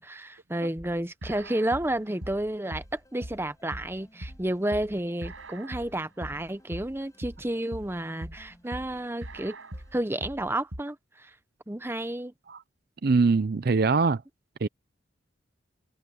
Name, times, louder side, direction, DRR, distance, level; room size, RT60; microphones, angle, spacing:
voice 1, 0.0-9.6 9.9-11.3 11.7-12.3, right 1 dB, 10° right, 0.7 m, -31 dB
sound 1, 0.8-10.8, right 1 dB, 80° right, 5.7 m, -41 dB
sound 2, 1.6-10.3, equal, 15° left, 5.8 m, -61 dB
voice 2, 13.0-14.2 14.6-14.7, right 4 dB, 50° right, 0.5 m, -22 dB
head